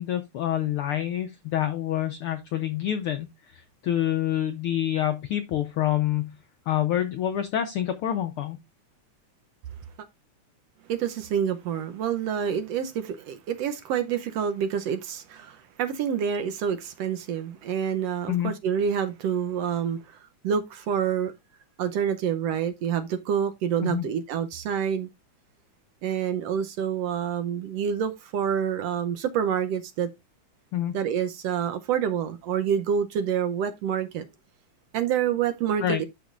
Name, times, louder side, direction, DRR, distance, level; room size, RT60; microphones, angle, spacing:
voice 1, 0.0-6.3 6.7-8.6 18.3-18.5 23.8-24.0 30.7-30.9 35.8-36.0, left 11 dB, 80° left, 1.2 m, -27 dB
voice 2, 10.9-20.2 20.4-21.3 21.8-25.1 26.0-30.1 30.9-34.3 34.9-36.1, right 8 dB, 70° right, 1.6 m, -27 dB
13.0 x 5.2 x 2.4 m
omnidirectional pair, 3.4 m